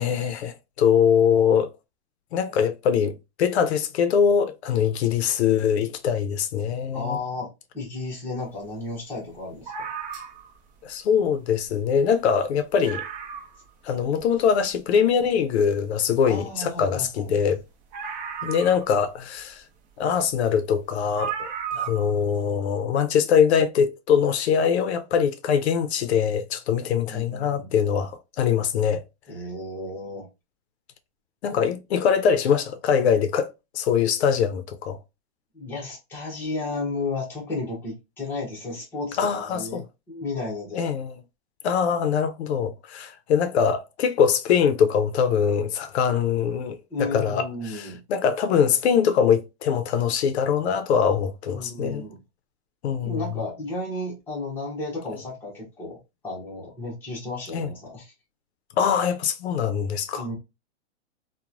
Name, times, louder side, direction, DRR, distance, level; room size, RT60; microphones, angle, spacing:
voice 1, 0.0-1.7 2.3-7.2 10.8-13.0 13.8-17.6 18.4-19.6 20.0-29.0 31.4-35.0 39.2-39.8 40.7-41.1 41.6-52.0 52.8-53.2 57.5-57.7 58.8-60.3, left 7 dB, 70° left, 0.5 m, -23 dB
voice 2, 6.9-9.9 16.3-17.4 26.9-27.7 29.3-30.3 35.5-40.9 46.9-48.0 51.5-52.2 53.0-56.0 56.2-58.1 60.2-60.4, left 2 dB, 5° left, 0.7 m, -33 dB
sound 1, 9.7-10.6 11.7-11.8 12.1-12.2 12.5-12.6 12.8-13.7 14.2-14.3 17.9-19.2 20.4-20.5 21.2-22.1 22.4-22.5, right 7 dB, 40° right, 0.7 m, -34 dB
2.9 x 2.1 x 2.4 m
supercardioid pair, 160°, 34 cm